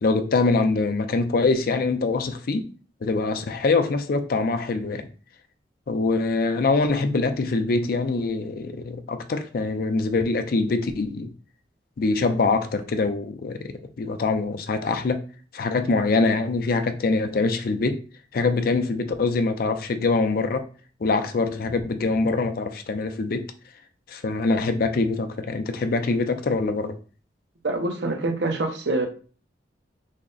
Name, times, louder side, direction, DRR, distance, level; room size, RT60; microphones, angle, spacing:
voice 1, 0.0-2.7 3.0-5.0 5.9-11.3 12.0-15.2 15.5-18.0 18.3-20.7 21.0-23.5 24.1-27.0, left 3 dB, 55° left, 0.4 m, -24 dB
voice 2, 27.6-29.1, right 2 dB, 70° right, 0.7 m, -25 dB
3.5 x 2.1 x 3.8 m
head